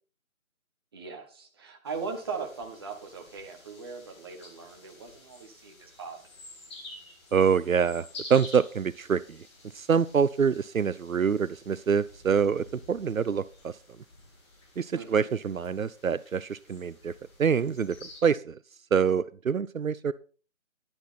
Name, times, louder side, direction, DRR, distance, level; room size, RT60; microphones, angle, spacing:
voice 1, 0.9-6.2 14.9-15.3, right 5 dB, 15° right, 2 dB, 1.4 m, -39 dB
sound 1, 1.9-18.2, left 2 dB, 20° left, 2.2 m, -50 dB
voice 2, 7.3-9.4 9.8-13.7 14.8-17.1 17.4-18.6 18.9-20.1, right 6 dB, 75° right, 16 dB, 0.7 m, -26 dB
11.0 x 9.9 x 4.1 m, 0.38 s
figure-of-eight pair, 160°, 41 cm